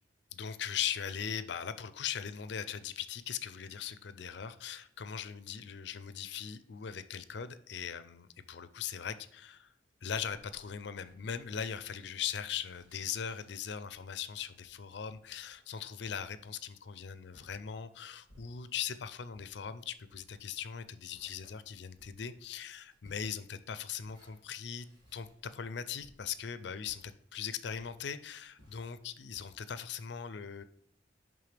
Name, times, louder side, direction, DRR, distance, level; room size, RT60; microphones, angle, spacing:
voice 1, 0.3-9.7 10.0-24.9 25.1-30.6, left 8 dB, 60° left, 13 dB, 0.4 m, -40 dB
sound 1, 11.0-18.9 19.3-29.5, equal, 20° right, 3.0 m, -64 dB
10.5 x 3.7 x 3.3 m, 0.69 s
head